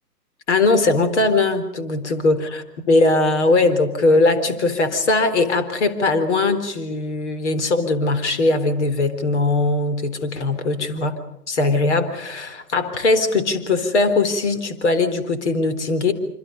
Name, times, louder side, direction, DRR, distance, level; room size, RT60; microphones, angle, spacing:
voice 1, 0.5-11.2 11.5-16.1, left 2 dB, 45° left, 10 dB, 4.0 m, -20 dB
27.0 x 26.0 x 5.4 m, 0.76 s
figure-of-eight pair, 145°, 48 cm